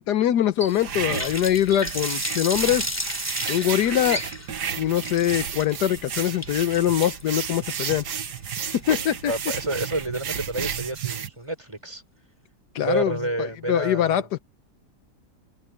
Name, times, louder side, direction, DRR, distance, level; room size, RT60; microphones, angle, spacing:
voice 1, 0.0-2.9 3.5-4.2 4.8-8.0 8.9-9.3 12.7-13.1 13.7-14.2, left 11 dB, 75° left, 1.4 m, -23 dB
Water tap faucet, 0.6-9.5, left 1 dB, 10° left, 3.2 m, -33 dB
sound 1, 0.8-11.3, right 7 dB, 70° right, 1.9 m, -32 dB
voice 2, 9.3-12.0 12.8-14.3, right 1 dB, 15° right, 4.1 m, -29 dB
omnidirectional pair, 1.8 m